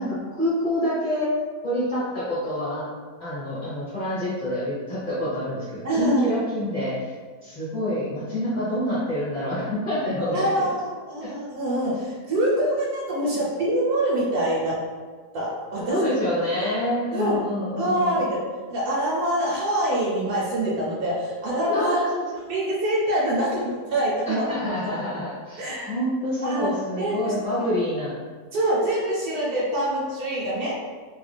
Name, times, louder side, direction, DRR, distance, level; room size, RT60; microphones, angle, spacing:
voice 1, 0.0-1.4 1.6-2.9 3.2-7.1 7.4-10.7 11.2-11.3 15.9-18.3 21.7-22.3 24.3-28.1, equal, 35° left, -10 dB, 0.8 m, -27 dB
voice 2, 5.8-6.2 10.3-14.8 15.3-16.0 16.5-16.7 17.1-17.4 17.7-18.4 18.7-22.0 22.5-24.5 25.6-25.9 26.4-26.7 27.0-27.3 28.5-30.7, right 1 dB, 65° right, -6 dB, 1.1 m, -25 dB
2.9 x 2.4 x 3.2 m, 1.5 s
omnidirectional pair, 1.8 m